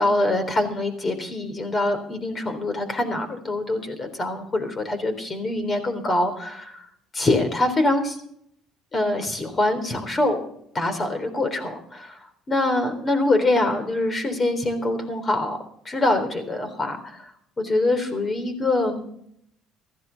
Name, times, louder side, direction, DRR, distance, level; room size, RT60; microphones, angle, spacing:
voice 1, 0.0-6.9 7.1-8.2 8.9-10.4 10.7-12.2 12.5-15.6 15.9-17.3 17.6-19.0, left 2 dB, 30° left, 9 dB, 3.7 m, -24 dB
15.5 x 14.5 x 4.1 m, 0.69 s
cardioid pair, 95°, 0 cm